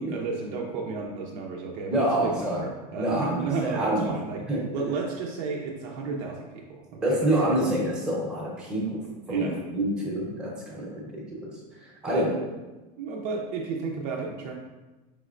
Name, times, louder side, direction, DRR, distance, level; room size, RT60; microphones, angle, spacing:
voice 1, 0.0-4.4 4.7-7.6 9.3-9.6 12.1-12.3 13.0-14.5, right 4 dB, 60° right, -1 dB, 0.6 m, -32 dB
voice 2, 1.9-2.7 3.0-4.1 4.5-4.6 7.0-9.0 9.3-11.2 11.8-12.3, right 1 dB, 5° right, -5 dB, 0.9 m, -27 dB
4.9 x 3.2 x 2.5 m, 1.1 s
supercardioid pair, 150°, 20 cm